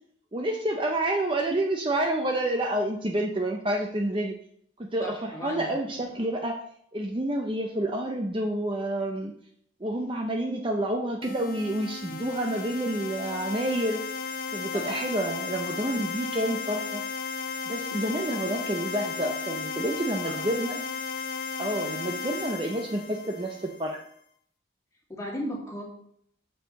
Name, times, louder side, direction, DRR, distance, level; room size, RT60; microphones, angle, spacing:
voice 1, 0.3-4.3 4.8-6.6 6.9-9.3 9.8-14.0 14.5-17.0 17.7-20.8 21.6-24.0, right 1 dB, 25° right, 2 dB, 0.6 m, -29 dB
voice 2, 5.0-6.0 14.7-15.0 18.5-18.6 20.3-20.5 25.1-25.8, equal, 15° left, -3 dB, 2.2 m, -37 dB
sound 1, 11.2-23.9, left 5 dB, 45° left, 0.7 m, -35 dB
7.8 x 4.6 x 6.3 m, 0.68 s
head